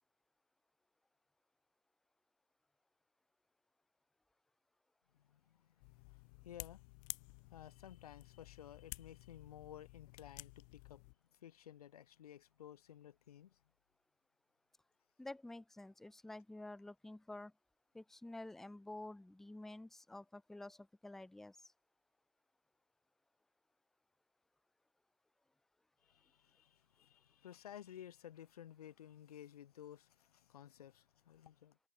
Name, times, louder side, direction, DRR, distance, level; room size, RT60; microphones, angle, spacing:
voice 1, 5.1-7.1 7.4-11.0 11.4-13.6 26.0-31.8, left 10 dB, 80° left, 0.7 m, -55 dB
sound 1, 5.8-11.1, left 39 dB, 35° left, 1.0 m, -53 dB
voice 2, 15.2-17.5 17.9-21.7, left 2 dB, ahead, 0.7 m, -50 dB
hypercardioid pair, 150°, 19 cm